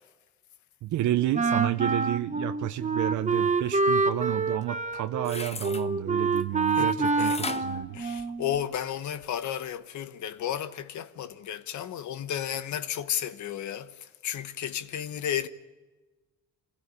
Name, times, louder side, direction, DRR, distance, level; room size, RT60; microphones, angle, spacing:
voice 1, 0.8-8.0, right 13 dB, 75° right, 0.7 m, -30 dB
Wind instrument woodwind instrument, 1.3-8.6, right 4 dB, 25° right, 1.1 m, -27 dB
sound 1, 4.9-5.9 7.2-8.8 9.2-9.3, left 4 dB, 20° left, 0.9 m, -37 dB
voice 2, 6.8-7.4 7.9-15.5, left 10 dB, 70° left, 1.1 m, -33 dB
25.0 x 16.0 x 8.4 m
cardioid pair, 90°, 30 cm